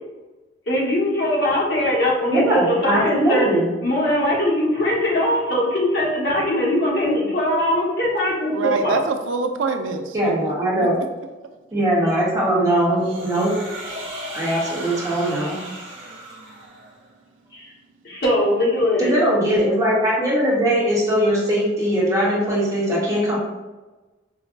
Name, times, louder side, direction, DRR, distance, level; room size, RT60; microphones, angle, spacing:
voice 1, 0.7-3.5 3.8-9.0 17.5-17.7 18.0-19.1, left 1 dB, 65° left, -5 dB, 1.2 m, -21 dB
voice 2, 2.3-3.7 10.1-11.0 11.7-13.5 14.3-15.6 19.0-23.4, right 1 dB, 20° right, -6 dB, 1.0 m, -20 dB
voice 3, 8.5-10.5 10.8-10.9, right 4 dB, 85° right, 7 dB, 0.4 m, -25 dB
sound 1, 13.0-17.0, right 1 dB, 70° right, 0.9 m, -35 dB
4.9 x 2.2 x 2.5 m, 1.1 s
head